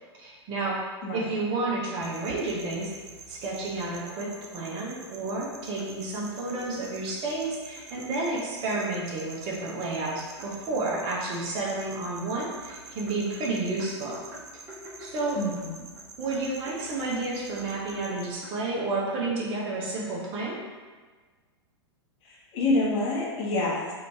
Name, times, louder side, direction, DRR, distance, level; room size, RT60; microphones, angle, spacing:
voice 1, 0.2-0.8 1.1-2.9 3.3-14.2 15.0-15.4 16.2-20.6, right 2 dB, 40° right, -3 dB, 0.8 m, -31 dB
sound 1, 2.0-18.3, right 4 dB, 75° right, 0.5 m, -47 dB
sound 2, 5.4-5.9 6.5-8.1 8.3-8.8 9.5-11.8 12.3-16.0 16.3-19.3, equal, 20° right, 1.1 m, -48 dB
voice 2, 15.3-15.8 22.2-23.9, left 2 dB, 40° left, -4 dB, 0.9 m, -27 dB
3.0 x 2.6 x 3.3 m, 1.4 s
figure-of-eight pair, 100°, 14 cm